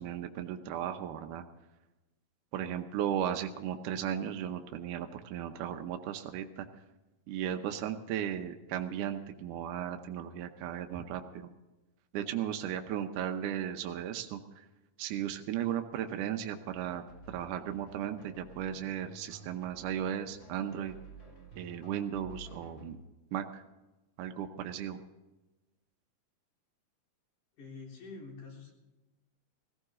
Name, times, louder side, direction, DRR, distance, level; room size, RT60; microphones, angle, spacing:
voice 1, 0.0-1.5 2.5-6.7 7.3-11.5 12.1-14.6 15.0-17.0 17.3-20.9 21.6-23.0 23.3-23.6 24.2-25.0, right 10 dB, 80° right, 5 dB, 2.4 m, -36 dB
sound 1, 16.7-22.9, right 1 dB, 35° left, 4.0 m, -52 dB
voice 2, 27.6-28.7, left 4 dB, 75° left, -2 dB, 5.2 m, -46 dB
18.0 x 16.0 x 3.7 m, 1.1 s
omnidirectional pair, 3.6 m